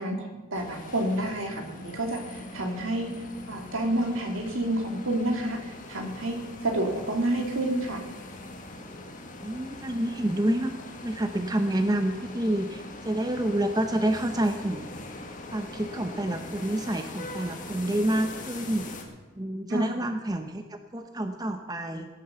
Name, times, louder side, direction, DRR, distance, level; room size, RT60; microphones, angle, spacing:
voice 1, 0.0-3.1 3.5-8.0 19.7-19.9, right 1 dB, 75° right, 2 dB, 2.7 m, -29 dB
sound 1, 0.5-19.0, left 2 dB, 40° left, 1.8 m, -42 dB
voice 2, 9.4-10.7 11.0-14.8 15.5-18.9 19.4-22.1, right 1 dB, 20° right, 7 dB, 0.7 m, -28 dB
17.0 x 8.6 x 6.9 m, 1.3 s
head